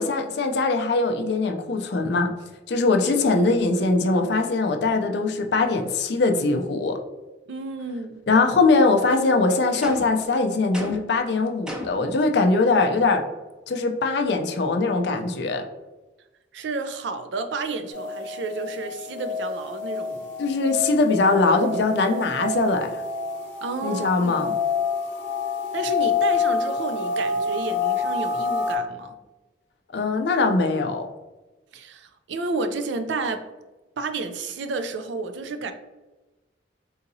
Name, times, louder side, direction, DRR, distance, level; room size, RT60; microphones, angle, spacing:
voice 1, 0.0-2.3 2.7-7.0 8.3-13.2 13.7-15.6 20.4-23.0 23.8-24.5 29.9-31.1, left 3 dB, 60° left, 5 dB, 0.4 m, -21 dB
voice 2, 7.5-8.2 16.5-20.2 23.6-24.4 25.7-29.2 31.7-33.5 34.0-35.7, right 3 dB, 75° right, 8 dB, 0.4 m, -31 dB
sound 1, 9.8-10.3 10.7-11.2 11.7-12.1, left 1 dB, 5° right, 0.4 m, -34 dB
sound 2, 17.9-28.8, left 4 dB, 90° left, 0.8 m, -28 dB
3.8 x 2.8 x 2.6 m, 1.1 s
head